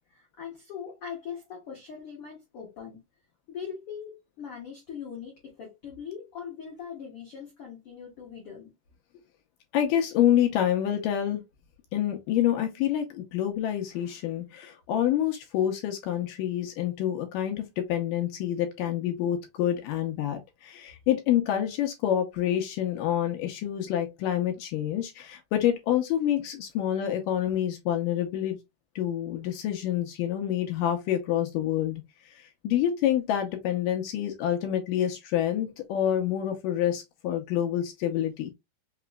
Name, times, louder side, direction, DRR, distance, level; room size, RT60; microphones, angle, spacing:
voice 1, 0.1-3.0 3.5-8.7, left 7 dB, 60° left, 1.5 m, -41 dB
voice 2, 9.7-11.4 11.9-28.6 29.0-38.5, left 11 dB, 80° left, 2.0 m, -27 dB
5.8 x 3.0 x 2.2 m
omnidirectional pair, 4.4 m